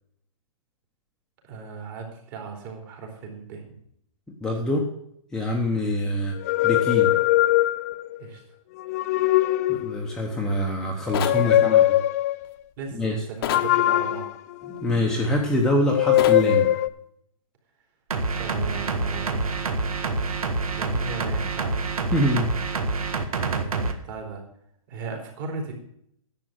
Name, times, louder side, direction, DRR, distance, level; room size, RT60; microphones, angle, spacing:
voice 1, 1.4-3.7 8.2-8.4 11.4-11.9 12.8-14.3 18.4-19.5 20.7-21.8 23.5-24.4 24.9-25.7, right 4 dB, 35° right, 2 dB, 3.3 m, -36 dB
voice 2, 4.4-4.8 5.3-6.4 6.6-7.1 9.7-11.8 12.9-13.2 14.7-16.7 22.1-22.5, left 1 dB, 5° left, -2 dB, 1.0 m, -25 dB
sound 1, 6.4-8.2 8.8-10.1 11.1-12.4 13.5-15.3 15.9-16.9, left 14 dB, 30° left, 0.4 m, -21 dB
sound 2, 11.1-11.4 13.4-13.7 16.2-16.4, left 10 dB, 45° left, 1.1 m, -28 dB
sound 3, 18.1-23.9, right 3 dB, 90° right, 1.7 m, -27 dB
11.0 x 7.5 x 6.5 m, 0.71 s
hypercardioid pair, 155°, 18 cm